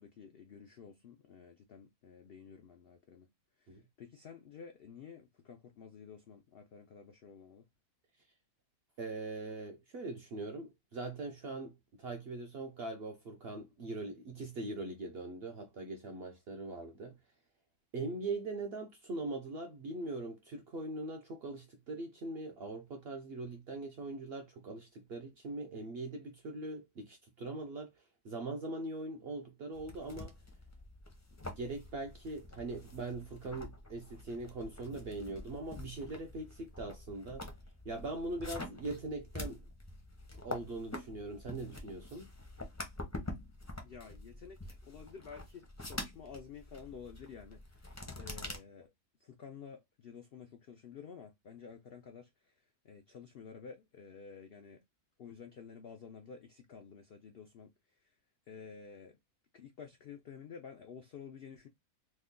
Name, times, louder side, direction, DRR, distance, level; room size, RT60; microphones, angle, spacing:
voice 1, 0.0-3.3 3.6-7.7 43.8-48.9 49.2-54.8 55.2-58.2 58.5-59.2 59.5-61.7, left 6 dB, 90° left, 0.5 m, -51 dB
voice 2, 9.0-17.2 17.9-27.9 28.2-30.3 31.4-37.5 37.8-39.6 40.4-42.3, right 2 dB, 65° right, 0.6 m, -41 dB
sound 1, 29.7-48.6, left 2 dB, 20° left, 0.4 m, -46 dB
3.2 x 2.2 x 3.6 m
omnidirectional pair, 1.6 m